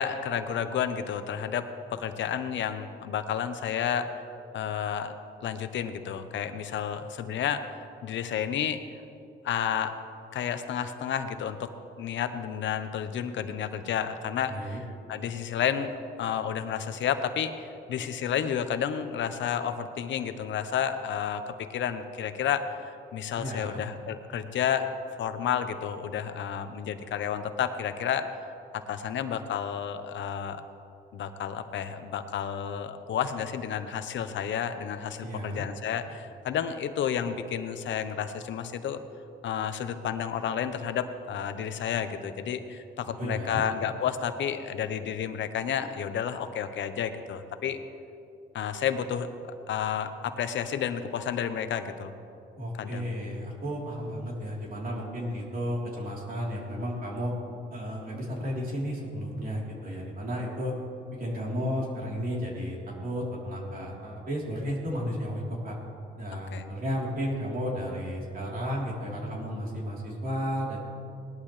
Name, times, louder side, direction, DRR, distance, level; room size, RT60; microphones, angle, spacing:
voice 1, 0.0-4.2 4.5-5.1 5.4-8.8 9.4-10.0 10.3-11.7 12.0-14.8 15.1-24.9 25.2-28.2 28.9-30.6 31.1-39.0 39.4-47.8 48.5-49.3 49.7-52.1 52.8-53.1 66.5-66.6, left 8 dB, 70° left, 9 dB, 0.9 m, -31 dB
voice 2, 14.5-14.8 23.4-23.8 35.2-35.6 43.2-43.6 52.6-57.3 57.7-60.8 61.1-65.8 66.2-70.8, equal, 45° right, -4 dB, 3.6 m, -33 dB
19.0 x 12.0 x 3.3 m, 2.7 s
cardioid pair, 90°, 20 cm